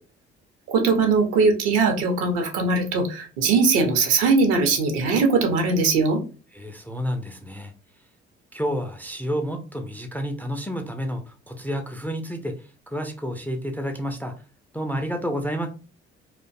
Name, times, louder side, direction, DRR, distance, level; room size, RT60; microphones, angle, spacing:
voice 1, 0.7-6.2, right 4 dB, 65° right, 4 dB, 0.7 m, -20 dB
voice 2, 6.5-7.7 8.5-14.3 14.7-15.7, equal, 5° left, 5 dB, 0.3 m, -30 dB
2.4 x 2.1 x 2.4 m, 0.34 s
figure-of-eight pair, 45°, 33 cm